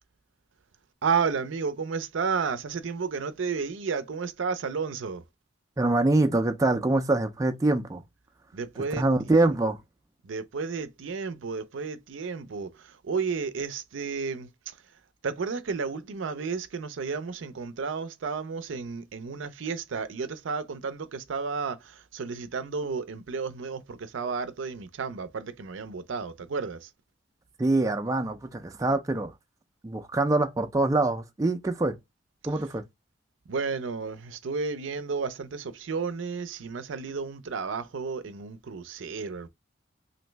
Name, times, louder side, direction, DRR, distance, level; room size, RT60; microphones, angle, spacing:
voice 1, 1.0-5.2 8.5-9.5 10.2-14.8 15.2-26.9 33.5-39.5, right 5 dB, 80° right, 0.5 m, -32 dB
voice 2, 5.8-8.0 9.0-9.8 27.6-29.3 29.8-32.0 32.4-32.8, right 2 dB, 15° right, 0.3 m, -24 dB
3.0 x 2.6 x 3.2 m
head